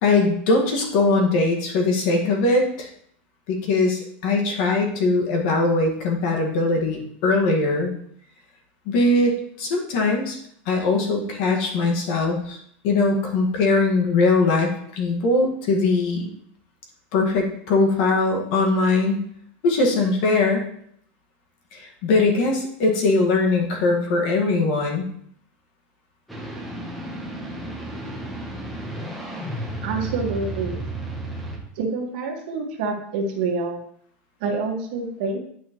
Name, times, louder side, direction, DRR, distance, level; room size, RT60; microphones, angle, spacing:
voice 1, 0.0-2.9 3.5-7.9 8.8-10.4 10.6-12.6 12.8-16.3 17.1-19.3 19.6-20.6 21.7-25.0, left 3 dB, 50° left, 2 dB, 1.7 m, -21 dB
sound 1, 26.3-31.6, right 1 dB, ahead, 1.0 m, -32 dB
voice 2, 29.8-30.8 31.7-33.8 34.4-35.4, right 4 dB, 55° right, 0 dB, 1.7 m, -27 dB
9.1 x 6.3 x 3.1 m, 0.65 s
supercardioid pair, 180°, 5 cm